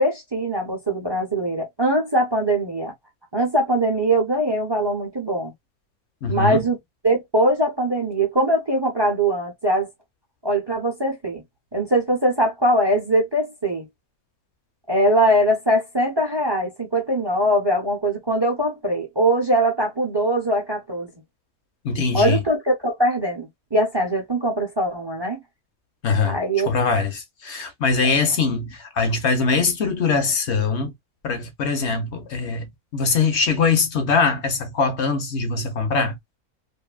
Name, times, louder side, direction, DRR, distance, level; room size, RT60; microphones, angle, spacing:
voice 1, 0.0-2.9 3.3-5.5 6.3-6.8 7.0-9.9 10.4-11.4 11.7-13.9 14.9-21.1 22.1-25.4 26.2-26.7 28.0-28.1, right 1 dB, 30° right, 0.5 m, -21 dB
voice 2, 6.2-6.6 21.8-22.4 26.0-26.4 26.7-30.9 31.2-36.2, left 4 dB, 60° left, 0.9 m, -22 dB
2.6 x 2.6 x 2.3 m
omnidirectional pair, 1.5 m